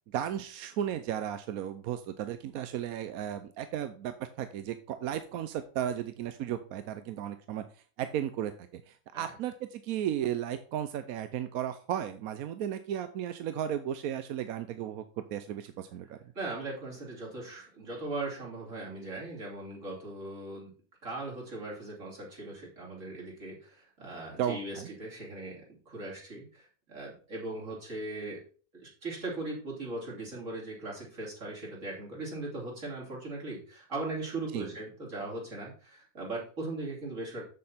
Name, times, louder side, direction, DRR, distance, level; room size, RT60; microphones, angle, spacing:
voice 1, 0.1-7.6 8.0-16.2 24.4-24.9 34.5-34.7, right 10 dB, 85° right, 10 dB, 1.1 m, -35 dB
voice 2, 16.3-20.7 21.0-28.4 28.7-37.4, right 2 dB, 60° right, -4 dB, 3.4 m, -39 dB
7.7 x 7.4 x 4.2 m, 0.40 s
omnidirectional pair, 1.5 m